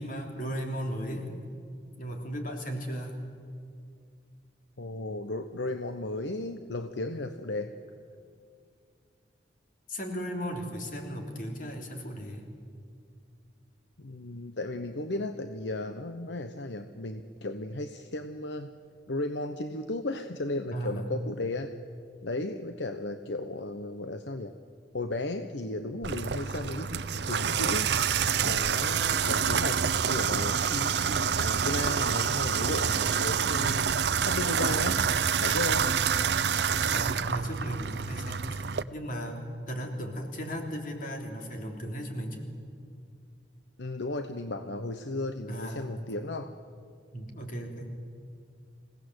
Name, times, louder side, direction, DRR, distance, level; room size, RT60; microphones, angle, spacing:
voice 1, 0.0-1.4 2.0-3.4 9.9-12.5 20.7-21.1 36.9-42.5 45.5-46.0 47.1-48.0, equal, 45° left, 2 dB, 3.3 m, -36 dB
voice 2, 4.8-7.7 14.0-18.7 19.1-21.8 22.2-24.5 24.9-27.9 28.4-33.8 34.3-35.1 35.4-35.9 43.8-46.5, left 2 dB, 70° left, 8 dB, 1.0 m, -35 dB
Water tap faucet / Bathtub (filling or washing), 26.0-38.8, right 7 dB, 65° right, 0.6 m, -27 dB
27.0 x 17.5 x 8.0 m, 2.3 s
head